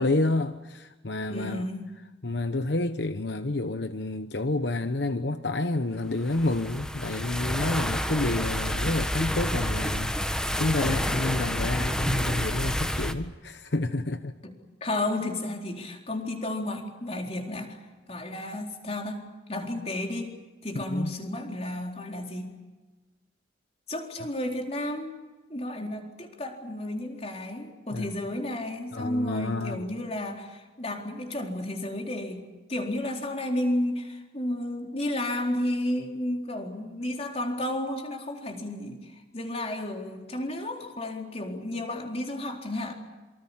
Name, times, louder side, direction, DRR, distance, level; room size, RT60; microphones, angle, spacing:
voice 1, 0.0-1.6 2.2-14.3 20.7-21.1 27.9-28.1 28.9-29.9, left 2 dB, 75° left, 1.1 m, -29 dB
voice 2, 1.3-1.9 14.4-14.5 14.8-17.8 18.1-20.4 20.6-22.6 23.9-25.2 25.5-42.9, left 1 dB, 35° left, 4.1 m, -32 dB
sound 1, 6.3-13.1, equal, 5° left, 1.5 m, -29 dB
27.5 x 25.0 x 7.4 m
head